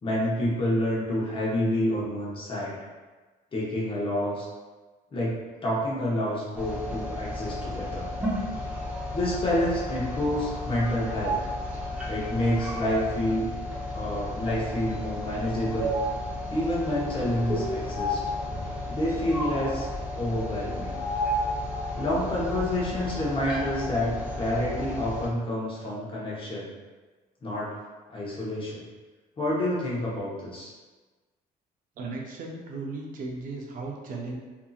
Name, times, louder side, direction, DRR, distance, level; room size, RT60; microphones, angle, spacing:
voice 1, 0.0-2.8 3.5-4.5 5.1-8.1 9.1-11.4 12.1-13.5 13.9-15.9 16.5-18.2 18.9-19.9 20.2-21.0 22.0-26.7 27.4-27.7 28.1-28.8 29.4-30.7, left 1 dB, 30° left, -5 dB, 0.9 m, -28 dB
sound 1, 6.5-25.3, left 1 dB, 5° right, 0.8 m, -32 dB
voice 2, 32.0-34.4, right 3 dB, 55° right, 0 dB, 0.6 m, -36 dB
2.7 x 2.6 x 2.4 m, 1.3 s
cardioid pair, 110°, 17 cm